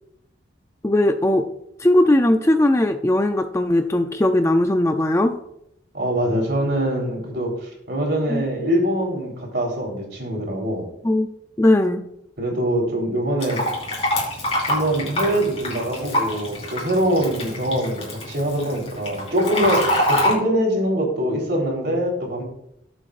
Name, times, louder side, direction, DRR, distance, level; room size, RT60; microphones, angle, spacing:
voice 1, 0.8-1.5 1.8-5.4 8.3-8.4 11.0-11.3 11.6-12.0, left 1 dB, 15° left, 7 dB, 0.4 m, -18 dB
voice 2, 5.9-10.8 12.4-13.6 14.7-22.4, right 1 dB, 60° right, 0 dB, 3.8 m, -23 dB
Fill (with liquid), 13.4-20.3, left 1 dB, 30° left, 4.3 m, -25 dB
20.0 x 7.7 x 2.5 m, 0.77 s
head